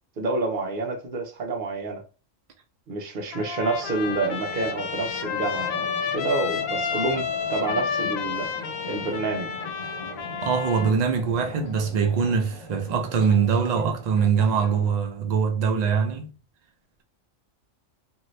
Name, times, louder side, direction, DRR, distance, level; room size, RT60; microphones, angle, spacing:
voice 1, 0.2-2.0 2.9-8.5 8.9-9.5, right 3 dB, 50° right, 0.7 m, -28 dB
Trumpet, 3.3-10.9, left 6 dB, 85° left, 1.0 m, -30 dB
sound 1, 3.7-15.0, left 3 dB, 65° left, 1.1 m, -41 dB
voice 2, 10.4-16.3, right 6 dB, 85° right, 0.3 m, -23 dB
2.6 x 2.6 x 3.1 m
omnidirectional pair, 1.4 m